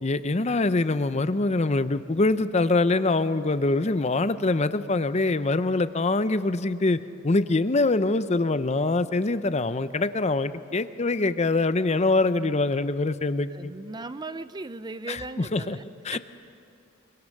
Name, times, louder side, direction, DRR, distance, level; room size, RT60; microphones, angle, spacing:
voice 1, 0.0-13.7 15.1-15.8 16.0-16.2, left 2 dB, 35° left, 13 dB, 0.7 m, -24 dB
voice 2, 13.5-15.9 16.1-16.2, right 3 dB, 20° right, 13 dB, 0.5 m, -37 dB
25.0 x 23.5 x 6.6 m, 2.6 s
head